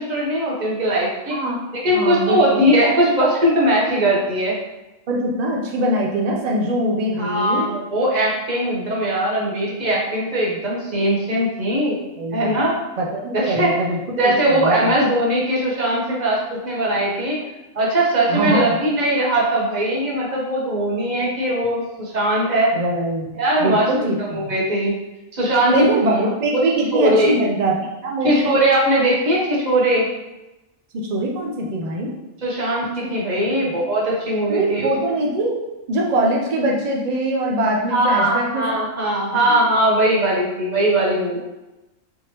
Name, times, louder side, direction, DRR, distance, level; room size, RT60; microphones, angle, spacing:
voice 1, 0.0-1.4 1.7-4.6 7.2-12.0 12.3-12.8 13.3-13.7 14.2-17.4 17.7-22.7 23.3-23.9 24.2-25.0 25.3-25.8 26.5-26.6 26.9-27.3 28.2-30.1 32.4-34.9 37.9-41.4, right 1 dB, 40° right, -4 dB, 0.9 m, -20 dB
voice 2, 1.9-2.6 5.1-7.7 12.2-12.6 13.0-14.9 18.3-18.8 22.7-23.3 23.6-24.5 25.7-27.8 28.0-28.5 30.9-32.1 33.3-33.7 34.5-35.6 35.9-38.6 39.3-39.4, right 1 dB, 75° right, -1 dB, 0.3 m, -22 dB
3.5 x 2.9 x 2.9 m, 1.0 s
omnidirectional pair, 1.3 m